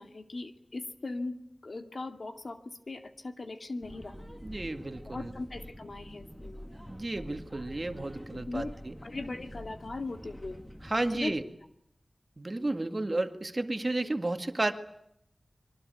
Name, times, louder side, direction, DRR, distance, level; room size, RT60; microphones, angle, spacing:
voice 1, 0.0-4.2 5.1-6.7 8.3-8.7 9.0-10.6 11.1-11.3 13.1-13.2, left 2 dB, 60° left, 7 dB, 2.4 m, -39 dB
sound 1, 3.8-11.5, equal, 5° left, 2.5 m, -46 dB
voice 2, 4.4-5.3 6.9-9.0 10.8-11.4 12.4-14.7, right 2 dB, 35° right, 8 dB, 2.1 m, -32 dB
26.5 x 23.5 x 9.4 m, 0.76 s
wide cardioid pair, 70°, 0 cm